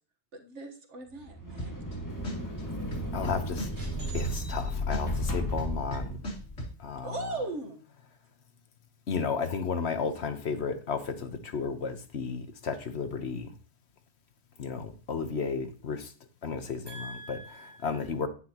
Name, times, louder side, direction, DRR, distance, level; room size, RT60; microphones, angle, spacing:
voice 1, 0.3-1.8 7.0-7.8, right 2 dB, 90° right, 1.7 m, -38 dB
sound 1, 1.2-6.8, equal, 15° left, 1.8 m, -34 dB
sound 2, 1.6-1.9 2.2-4.6 4.9-6.7, equal, 90° left, 2.9 m, -37 dB
voice 2, 3.1-3.7 4.1-6.1 6.8-7.2 9.1-13.5 14.6-16.1 16.4-16.9 17.3-17.4 17.8-18.3, left 5 dB, 70° left, 1.3 m, -33 dB
voice 3, 3.7-4.7 16.9-18.1, right 1 dB, 45° right, 3.8 m, -46 dB
9.8 x 9.8 x 3.0 m
omnidirectional pair, 1.2 m